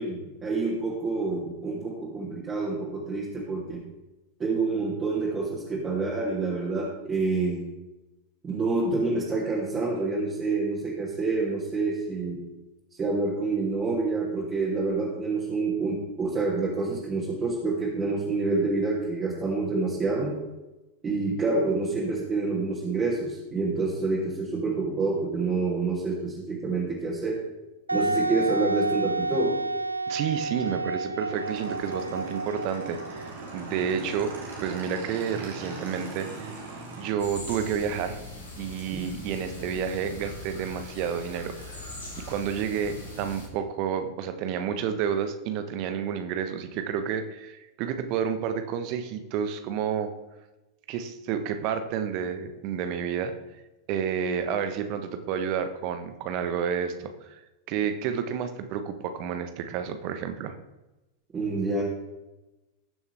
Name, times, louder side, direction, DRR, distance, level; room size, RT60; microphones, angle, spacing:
voice 1, 0.0-3.9 4.4-7.7 8.4-12.5 13.0-20.4 21.0-27.4 27.9-29.6 31.0-31.2 38.9-39.1 61.3-61.8, right 3 dB, 20° right, -7 dB, 3.1 m, -27 dB
Wind instrument woodwind instrument, 27.9-33.5, right 2 dB, 80° right, 0.3 m, -30 dB
voice 2, 30.1-34.3 34.6-36.3 37.0-38.2 38.6-41.8 42.2-50.1 50.9-53.3 53.9-57.4 57.7-60.5, right 7 dB, 45° right, 9 dB, 1.2 m, -30 dB
Motorcycle / Engine, 31.3-37.1, right 3 dB, 65° right, 3.3 m, -40 dB
sound 1, 37.2-43.5, left 2 dB, 75° left, 2.9 m, -41 dB
20.5 x 7.1 x 3.5 m, 1.0 s
figure-of-eight pair, 90°, 0 cm